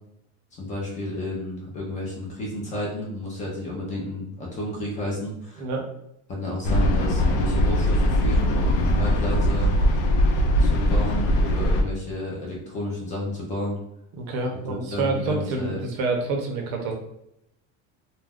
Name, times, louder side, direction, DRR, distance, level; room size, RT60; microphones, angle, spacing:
voice 1, 0.6-5.7 6.3-9.7 10.6-13.8 14.7-15.9, left 1 dB, 20° left, -3 dB, 0.5 m, -31 dB
sound 1, 6.6-11.8, equal, 90° left, 0.5 m, -21 dB
voice 2, 14.2-16.9, right 3 dB, 55° right, 2 dB, 0.6 m, -27 dB
2.3 x 2.1 x 3.4 m, 0.79 s
cardioid pair, 175°, 33 cm